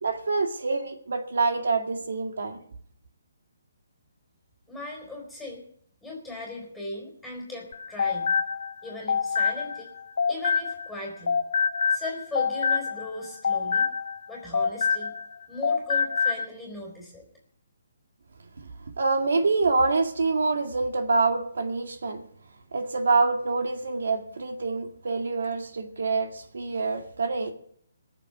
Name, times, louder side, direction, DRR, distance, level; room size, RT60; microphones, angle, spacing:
voice 1, 0.0-2.6 19.0-22.2 22.7-27.5, right 3 dB, 75° right, 2.2 m, -26 dB
voice 2, 4.7-5.6 6.0-8.4 8.8-9.9 10.3-11.4 11.9-13.9 14.3-15.1 15.5-17.2, left 2 dB, ahead, 4.1 m, -38 dB
sound 1, 7.7-11.0 11.3-15.3 15.6-16.4, left 6 dB, 60° left, 0.6 m, -26 dB
19.5 x 7.2 x 7.9 m
hypercardioid pair, 170°, 0 cm